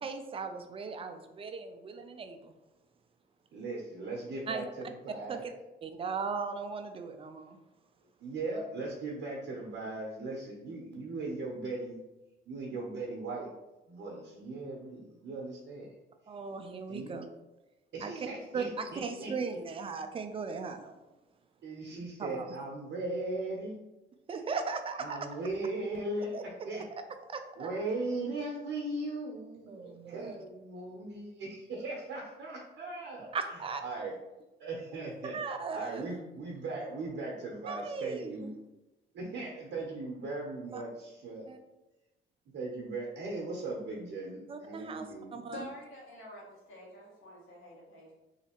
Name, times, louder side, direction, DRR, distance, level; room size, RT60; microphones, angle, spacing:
voice 1, 0.0-2.5 4.5-4.6 5.3-5.5 5.8-7.6 16.3-17.3 18.0-18.1 18.5-20.9 22.2-22.6 24.3-25.2 26.3-26.4 26.7-26.8 27.3-27.7 29.7-30.4 33.3-33.8 35.3-36.1 37.7-38.5 40.7-40.8 41.5-41.6 44.5-45.7, right 5 dB, 30° right, 7 dB, 0.4 m, -38 dB
voice 2, 3.5-5.5 8.2-12.0 12.5-13.5 13.9-15.9 16.9-17.1 17.9-19.3 21.6-23.7 25.0-26.4 26.6-26.8 27.6-34.1 34.6-35.4 35.7-38.5 39.1-41.4 42.5-45.4, right 2 dB, 65° right, -2 dB, 0.8 m, -38 dB
voice 3, 45.5-48.1, left 1 dB, 80° left, -4 dB, 1.4 m, -48 dB
3.2 x 2.8 x 2.9 m, 1.0 s
cardioid pair, 90°, 20 cm